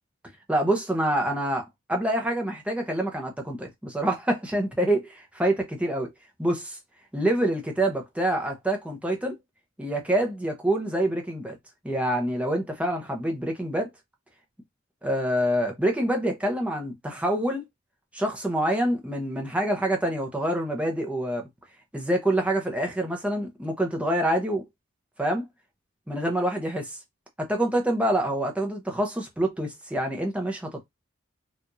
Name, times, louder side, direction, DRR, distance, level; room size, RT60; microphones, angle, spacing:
voice 1, 0.5-6.1 6.4-6.8 7.1-9.3 9.8-11.6 11.8-13.9 15.0-17.6 18.1-21.4 21.9-24.6 25.2-25.5 26.1-27.0 27.4-30.8, right 1 dB, 5° right, 0.8 m, -26 dB
4.6 x 2.5 x 2.6 m
head